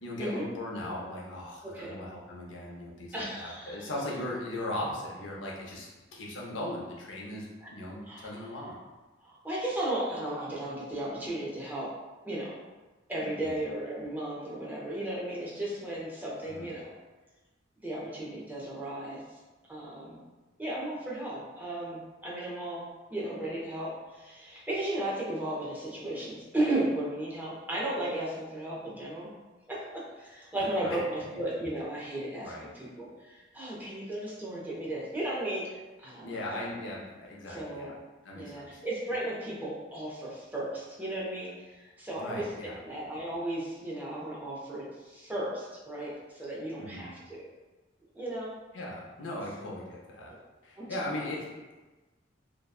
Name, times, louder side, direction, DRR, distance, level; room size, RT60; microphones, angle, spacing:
voice 1, 0.0-8.7 13.4-13.5 16.4-16.7 30.6-31.0 32.4-32.7 36.2-37.9 38.2-38.8 42.1-42.8 46.8-47.1 48.7-50.3 50.6-51.5, left 1 dB, 80° left, -3 dB, 0.6 m, -38 dB
voice 2, 1.6-2.0 3.1-3.9 7.6-7.7 8.1-8.3 9.2-11.9 12.2-12.6 13.1-16.9 17.8-19.2 19.7-20.2 20.6-22.8 23.1-29.3 29.7-36.7 37.5-37.9 38.3-42.5 42.8-47.4 48.1-48.5 49.3-49.4 50.3-50.4 50.8-51.2, right 1 dB, 10° right, -6 dB, 0.5 m, -35 dB
2.6 x 2.1 x 2.3 m, 1.2 s
head